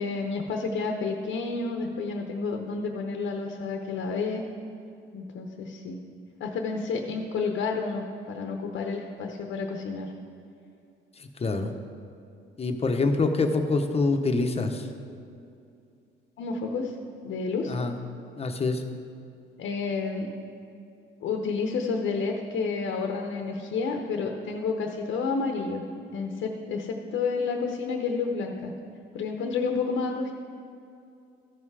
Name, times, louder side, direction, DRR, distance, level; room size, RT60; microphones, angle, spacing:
voice 1, 0.0-4.4 5.1-6.0 6.4-10.1 16.4-16.9 17.2-17.8 19.6-20.3 21.2-25.8 26.1-28.7 29.1-30.3, left 4 dB, 75° left, 3 dB, 0.9 m, -30 dB
voice 2, 11.2-11.7 12.6-14.9 17.7-17.9 18.4-18.8, left 3 dB, 30° left, 5 dB, 0.9 m, -25 dB
14.0 x 5.6 x 4.8 m, 2.6 s
cardioid pair, 90°, 20 cm